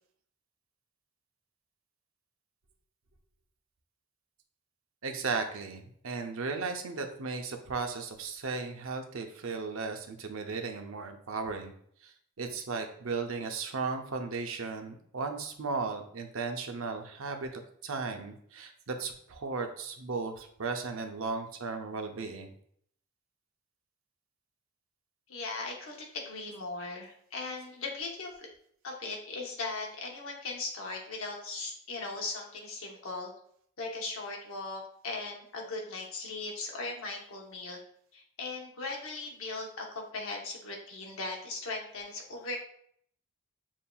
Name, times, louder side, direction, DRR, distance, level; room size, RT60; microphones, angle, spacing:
voice 1, 5.0-11.7 12.0-22.5, right 4 dB, 65° right, 5 dB, 0.6 m, -36 dB
voice 2, 25.3-28.5 28.8-33.3 33.8-37.8 38.1-42.6, left 3 dB, 65° left, 0 dB, 0.8 m, -38 dB
7.1 x 2.7 x 2.3 m, 0.64 s
head